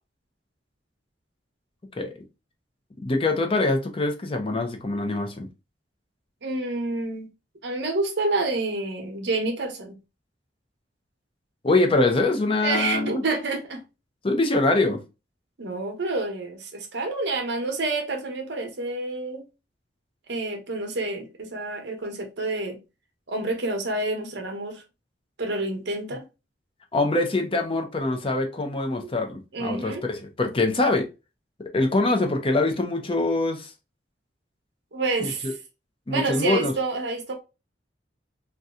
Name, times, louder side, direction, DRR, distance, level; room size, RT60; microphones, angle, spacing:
voice 1, 3.0-5.5 11.6-13.2 14.2-15.0 26.9-31.1 31.7-33.7 35.2-35.5 36.1-36.7, left 2 dB, 30° left, 0.6 m, -24 dB
voice 2, 6.4-7.3 7.6-10.0 12.6-13.8 15.6-19.4 20.3-22.8 23.3-24.8 25.4-26.2 29.5-30.0 34.9-35.5 36.1-37.4, right 2 dB, 65° right, 0.8 m, -28 dB
2.7 x 2.3 x 3.5 m
head